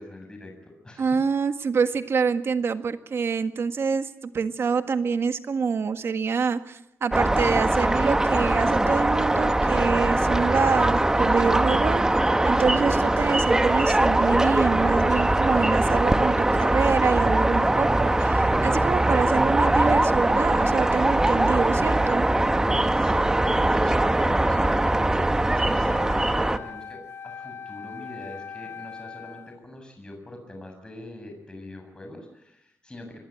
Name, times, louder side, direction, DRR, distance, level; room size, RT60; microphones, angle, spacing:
voice 1, 0.0-1.2 23.0-33.2, left 1 dB, 15° left, 4 dB, 7.2 m, -43 dB
voice 2, 1.0-12.0 12.4-22.3, right 5 dB, 50° right, 9 dB, 1.7 m, -26 dB
sound 1, 7.1-26.6, right 1 dB, 10° right, 1.1 m, -21 dB
Wind instrument woodwind instrument, 25.8-29.6, left 6 dB, 50° left, 0.9 m, -40 dB
25.5 x 21.5 x 9.1 m, 0.81 s
wide cardioid pair, 145°, 5 cm